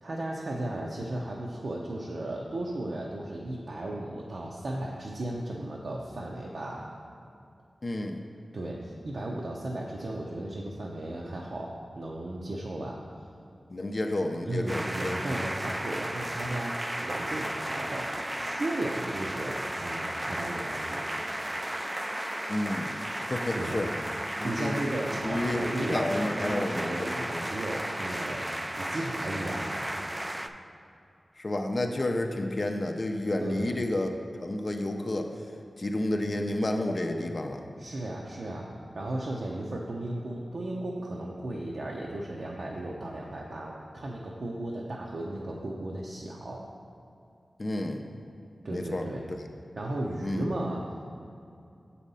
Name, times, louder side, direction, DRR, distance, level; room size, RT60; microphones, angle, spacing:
voice 1, 0.0-6.9 8.5-13.0 14.4-21.2 23.5-23.8 24.4-28.5 28.8-29.9 33.4-33.8 37.8-46.7 48.6-49.2 49.8-50.8, right 1 dB, 70° right, -3 dB, 0.6 m, -35 dB
voice 2, 7.8-8.2 13.7-15.2 22.5-22.9 23.3-23.9 24.4-24.7 25.1-27.4 31.4-34.1 34.4-35.3 35.8-37.6 47.6-48.0 48.7-49.1 50.2-50.5, left 1 dB, 45° left, 4 dB, 0.5 m, -30 dB
sound 1, 14.7-30.5, right 1 dB, 15° right, 0.3 m, -34 dB
7.3 x 4.2 x 5.4 m, 2.5 s
wide cardioid pair, 65°, 0 cm